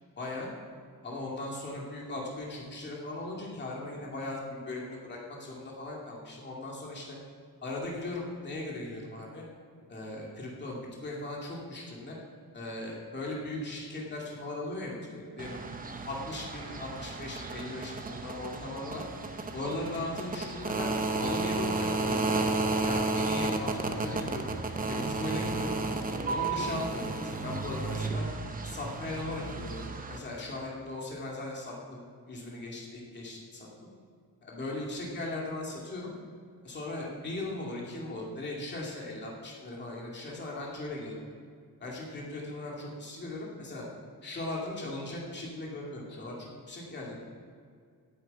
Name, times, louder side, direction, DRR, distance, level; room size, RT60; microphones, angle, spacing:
voice 1, 0.2-0.5 1.0-7.2 7.6-9.4 9.9-12.2 12.5-15.6 16.1-19.0 19.5-22.3 22.8-24.5 24.9-25.8 26.3-28.3 28.6-29.8 30.1-33.7 34.4-36.1 36.6-41.2 41.8-43.9 44.2-47.2, left 2 dB, 30° left, -3 dB, 2.4 m, -38 dB
marmora hotel cellnoise, 15.4-30.2, right 3 dB, 25° right, 0.8 m, -33 dB
9.6 x 8.1 x 9.0 m, 2.1 s
wide cardioid pair, 180°, 35 cm